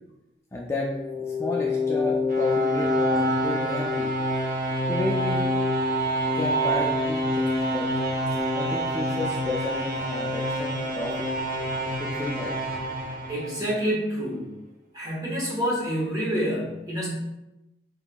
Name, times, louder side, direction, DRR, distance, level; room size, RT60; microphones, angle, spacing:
voice 1, 0.5-0.9 1.2-4.1 4.9-5.5 6.3-7.9 8.5-11.4 12.0-12.6, left 2 dB, 15° left, -3 dB, 0.3 m, -32 dB
sound 1, 0.8-13.9, equal, 50° right, 0.7 m, -26 dB
voice 2, 13.3-14.5 14.9-17.1, equal, 20° right, -5 dB, 1.2 m, -27 dB
4.7 x 3.5 x 2.2 m, 0.95 s
head